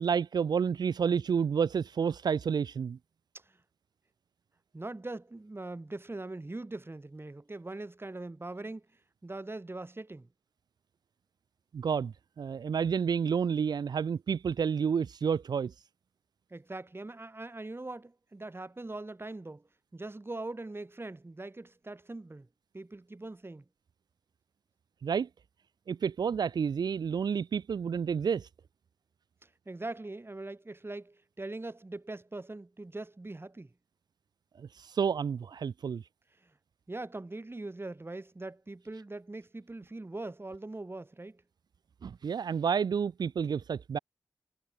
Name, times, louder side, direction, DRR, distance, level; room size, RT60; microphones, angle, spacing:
voice 1, 0.0-3.0 11.7-15.7 25.0-25.3 25.9-28.5 34.6-36.0 42.0-44.0, right 6 dB, 90° right, 0.8 m, -30 dB
voice 2, 4.7-8.9 9.2-10.3 16.5-22.5 22.7-23.6 29.4-33.7 36.4-36.5 36.9-41.4, right 2 dB, 35° right, 4.9 m, -42 dB
cardioid pair, 45°, 7 cm